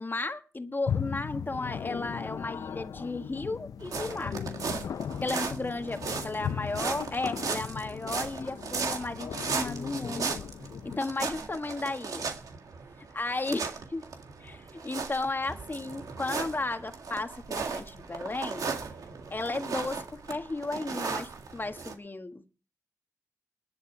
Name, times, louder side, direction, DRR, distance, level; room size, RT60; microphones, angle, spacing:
voice 1, 0.0-4.4 5.2-10.4 10.8-12.3 13.0-14.0 14.4-18.7 19.3-22.5, left 2 dB, 35° left, 7 dB, 1.7 m, -34 dB
sound 1, 0.9-11.0, left 8 dB, 80° left, 0.5 m, -37 dB
sound 2, 3.8-21.9, right 5 dB, 75° right, 1.9 m, -37 dB
20.0 x 8.2 x 4.6 m, 0.38 s
supercardioid pair, 40°, 6 cm